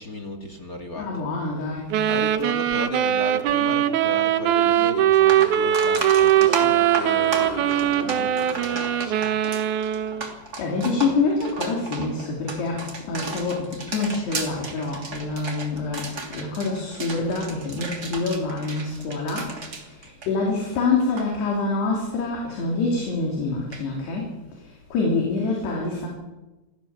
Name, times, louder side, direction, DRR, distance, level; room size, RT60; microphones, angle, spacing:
voice 1, 0.0-1.2 2.1-9.4, left 1 dB, 35° left, 3 dB, 1.6 m, -35 dB
voice 2, 1.0-2.0 10.2-26.1, left 3 dB, 70° left, -1 dB, 5.2 m, -26 dB
sound 1, 1.9-10.3, right 11 dB, 80° right, 1.8 m, -21 dB
sound 2, 4.6-4.7 5.1-20.7 21.0-21.3 23.7-23.8, right 3 dB, 25° right, 2.7 m, -34 dB
sound 3, 4.9-11.7, left 2 dB, 10° left, 2.0 m, -40 dB
26.5 x 16.5 x 7.4 m, 1.1 s
omnidirectional pair, 5.1 m